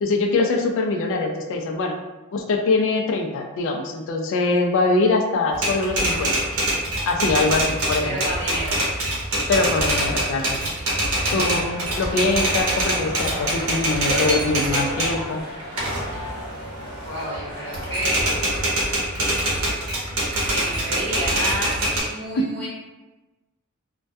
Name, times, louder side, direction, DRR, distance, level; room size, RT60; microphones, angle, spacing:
voice 1, 0.0-1.9 2.3-6.4 7.1-8.2 9.5-10.6 11.3-15.4 22.3-22.4, left 3 dB, 60° left, 3 dB, 0.3 m, -23 dB
Typewriter, 5.5-15.2 15.6-17.4 17.7-22.0, right 1 dB, 70° right, 0.7 m, -24 dB
voice 2, 8.0-8.7 17.0-18.4 20.5-22.7, equal, 20° left, -11 dB, 1.0 m, -30 dB
sound 1, 11.4-18.7, equal, 40° right, 1.2 m, -34 dB
2.2 x 2.2 x 2.6 m, 1.1 s
head